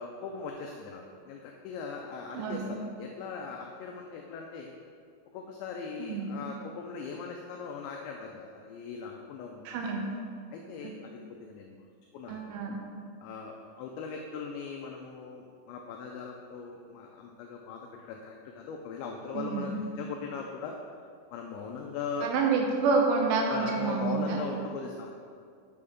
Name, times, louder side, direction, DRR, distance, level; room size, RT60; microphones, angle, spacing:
voice 1, 0.0-4.7 5.3-9.8 10.5-11.8 12.1-12.4 13.2-20.8 21.3-22.3 23.5-25.1, left 5 dB, 90° left, 1 dB, 2.5 m, -39 dB
voice 2, 2.3-2.7 6.0-6.3 9.7-10.1 12.3-12.8 19.3-19.7 22.2-24.4, right 4 dB, 80° right, 1 dB, 3.1 m, -28 dB
7.6 x 6.6 x 3.6 m, 2.3 s
omnidirectional pair, 5.7 m